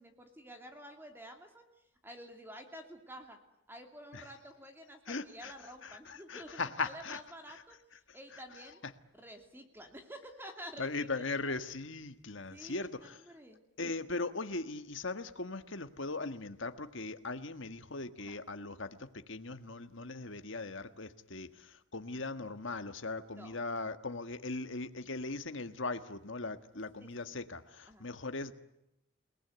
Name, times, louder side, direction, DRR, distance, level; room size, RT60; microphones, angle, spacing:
voice 1, 0.0-3.4 3.7-7.8 8.1-8.8 9.1-10.9 11.3-11.4 12.5-13.6 18.2-18.4 23.3-23.6 27.0-27.3 27.9-28.1, equal, 10° right, 5 dB, 2.7 m, -50 dB
voice 2, 5.1-7.2 10.8-13.2 13.8-28.5, left 3 dB, 60° left, 9 dB, 1.6 m, -39 dB
29.0 x 19.5 x 9.5 m, 0.88 s
head